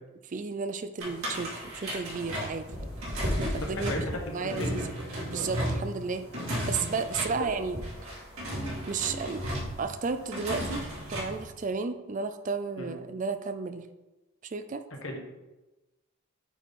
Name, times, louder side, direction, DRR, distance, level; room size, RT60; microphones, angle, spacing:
voice 1, 0.3-2.7 3.5-3.9 4.3-5.0 5.3-6.3 6.7-7.8 8.9-9.4 9.8-13.8 14.4-14.8, right 4 dB, 35° right, 9 dB, 0.4 m, -33 dB
sound 1, 1.0-11.4, equal, 85° right, 2.6 m, -34 dB
voice 2, 3.6-4.7 12.8-12.9 15.0-15.2, left 1 dB, 70° left, 1 dB, 1.3 m, -35 dB
9.0 x 4.2 x 3.6 m, 1.1 s
head